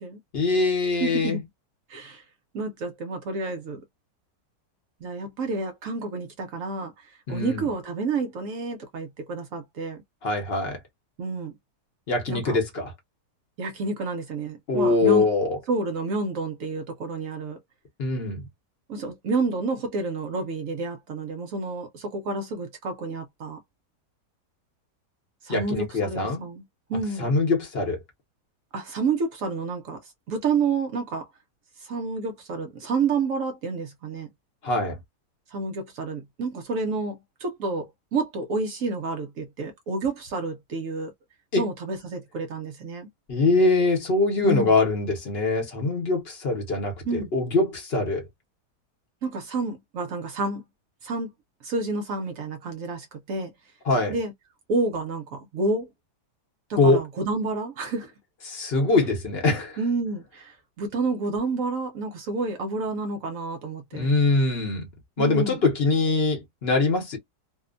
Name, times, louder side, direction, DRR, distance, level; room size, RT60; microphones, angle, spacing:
voice 1, 0.3-1.4 7.3-7.7 10.2-10.8 12.1-12.9 14.7-15.6 18.0-18.4 25.5-26.5 27.2-28.0 34.6-35.0 41.5-41.6 43.3-48.2 53.9-54.1 56.8-57.0 58.5-59.8 63.9-64.9 65.2-67.2, left 3 dB, 45° left, 0.9 m, -23 dB
voice 2, 1.0-1.4 1.9-2.2 2.5-3.8 5.0-10.0 11.2-11.5 12.3-12.6 13.6-15.3 15.7-17.6 18.9-23.6 25.4-26.6 26.9-27.3 28.7-30.0 30.3-31.3 31.8-34.3 35.5-41.1 41.6-43.1 44.4-44.7 47.0-47.3 49.2-50.6 51.0-51.3 51.6-53.5 54.1-54.3 54.7-55.9 56.7-58.1 59.8-64.1 65.2-65.6, right 3 dB, 65° right, 0.9 m, -29 dB
2.8 x 2.1 x 2.4 m
omnidirectional pair, 1.8 m